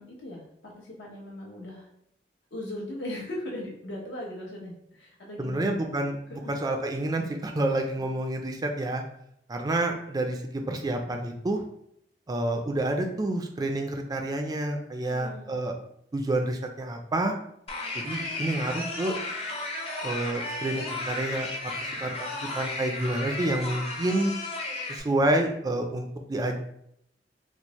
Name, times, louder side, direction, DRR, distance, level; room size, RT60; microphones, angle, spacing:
voice 1, 0.0-1.9 2.5-5.8 6.3-6.5 8.0-8.1 15.1-15.5, left 1 dB, 80° left, -2 dB, 1.0 m, -39 dB
voice 2, 5.4-9.0 9.5-11.6 12.3-15.7 16.1-17.3 17.9-19.1 20.0-24.3 24.9-26.6, right 1 dB, 20° right, 4 dB, 0.3 m, -29 dB
sound 1, 17.7-25.0, left 2 dB, 35° left, 0.6 m, -34 dB
4.2 x 2.0 x 2.9 m, 0.73 s
head